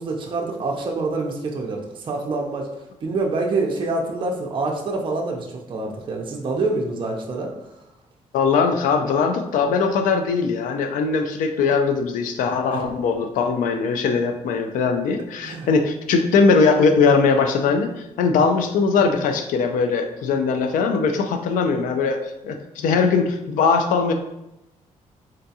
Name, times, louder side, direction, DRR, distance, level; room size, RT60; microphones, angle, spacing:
voice 1, 0.0-7.5 12.7-12.8 15.4-15.7, right 3 dB, 40° right, 0 dB, 0.5 m, -26 dB
voice 2, 8.3-22.2 22.4-24.1, left 5 dB, 85° left, 6 dB, 0.4 m, -20 dB
3.8 x 2.3 x 2.7 m, 0.87 s
cardioid pair, 105°, 13 cm